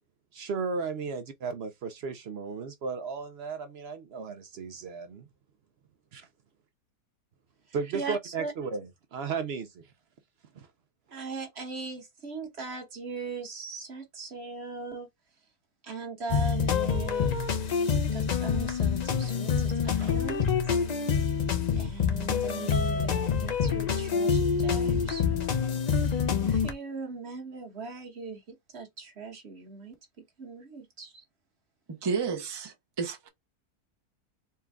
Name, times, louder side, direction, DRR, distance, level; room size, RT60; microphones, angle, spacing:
voice 1, 0.3-5.3 6.1-6.3 7.7-9.9 10.5-10.7 20.0-20.1, right 5 dB, 65° right, 0.6 m, -35 dB
voice 2, 7.9-8.5 11.1-15.1 15.8-17.3 18.1-20.8 21.8-25.5 26.0-30.0 30.4-31.2, right 4 dB, 45° right, 1.4 m, -39 dB
sound 1, 16.3-26.7, left 6 dB, 90° left, 0.3 m, -26 dB
voice 3, 31.9-33.3, right 5 dB, 25° right, 0.5 m, -32 dB
4.4 x 2.3 x 3.5 m
omnidirectional pair, 1.6 m